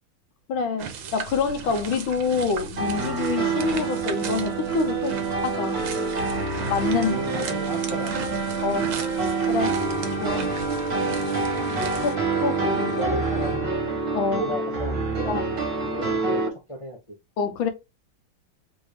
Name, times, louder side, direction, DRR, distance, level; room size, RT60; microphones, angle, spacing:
voice 1, 0.5-5.8 6.7-7.2 8.6-9.0 9.5-9.8 10.2-10.5 12.0-13.0 14.1-14.5 15.3-15.4 17.4-17.7, left 5 dB, 75° left, 1.5 m, -27 dB
sound 1, 0.8-12.1, right 6 dB, 70° right, 1.5 m, -37 dB
sound 2, 2.8-16.5, right 4 dB, 50° right, 1.6 m, -27 dB
sound 3, 6.6-13.6, left 8 dB, 55° left, 1.3 m, -41 dB
voice 2, 7.0-8.5 12.8-13.7 14.4-15.4 15.8-17.0, right 1 dB, 35° left, 0.4 m, -34 dB
3.9 x 2.6 x 4.7 m
omnidirectional pair, 2.3 m